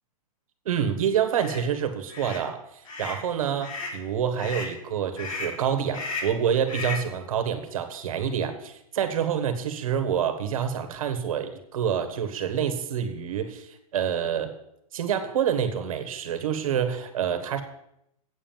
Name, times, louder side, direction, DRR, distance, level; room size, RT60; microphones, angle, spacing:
voice 1, 0.6-2.6 3.0-14.5 14.9-17.6, right 8 dB, 65° right, 8 dB, 1.5 m, -27 dB
sound 1, 1.3-1.6 2.1-2.4 2.9-3.2 3.6-4.0 4.4-4.7 5.2-5.6 5.9-6.4 6.7-7.1, left 4 dB, 60° left, 2.7 m, -34 dB
8.4 x 7.4 x 7.4 m, 0.78 s
supercardioid pair, 170°, 19 cm